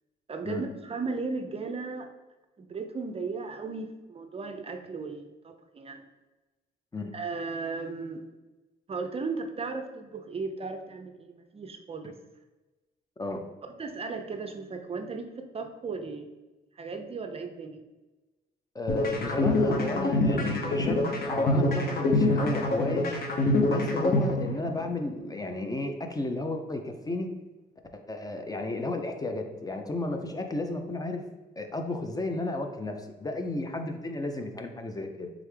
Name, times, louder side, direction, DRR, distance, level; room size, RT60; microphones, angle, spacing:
voice 1, 0.3-2.1 2.6-6.1 7.1-8.2 8.9-12.2 13.8-16.3 16.8-17.9, right 4 dB, 30° right, 6 dB, 0.5 m, -36 dB
voice 2, 18.7-23.1 23.7-27.3 27.9-31.3 31.6-35.3, left 2 dB, 20° left, 5 dB, 0.5 m, -33 dB
sound 1, 18.9-24.9, left 2 dB, 55° left, 0.9 m, -25 dB
3.6 x 3.4 x 3.3 m, 1.1 s
cardioid pair, 80°, 19 cm